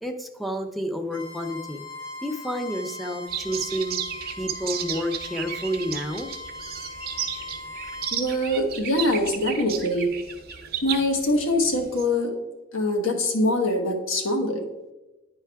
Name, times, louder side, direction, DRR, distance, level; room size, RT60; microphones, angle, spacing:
voice 1, 0.0-1.8 2.2-4.0 4.4-6.3, equal, ahead, 5 dB, 0.5 m, -30 dB
Bowed string instrument, 1.1-8.2, left 2 dB, 55° left, 1.7 m, -39 dB
sound 1, 3.3-12.1, right 8 dB, 50° right, 0.7 m, -34 dB
voice 2, 8.1-10.1 10.8-12.3 12.7-14.6, left 1 dB, 75° left, 3 dB, 1.1 m, -23 dB
10.0 x 4.5 x 3.4 m, 1.0 s
head